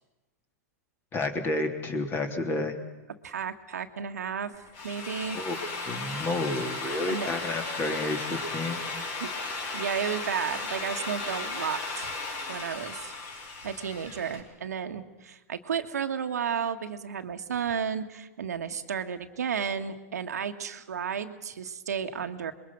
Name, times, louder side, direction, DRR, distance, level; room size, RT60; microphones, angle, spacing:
voice 1, 1.1-2.8 5.3-5.6 5.9-8.8, left 2 dB, 25° left, 5 dB, 3.2 m, -30 dB
voice 2, 3.2-4.5 4.8-5.4 7.1-7.3 9.2-9.3 9.7-12.1 12.5-13.1 13.6-22.5, right 7 dB, 90° right, 6 dB, 1.6 m, -33 dB
Drill, 4.6-14.4, left 3 dB, 50° left, 5.3 m, -35 dB
27.0 x 22.0 x 6.1 m, 1.1 s
hypercardioid pair, 120°, 8 cm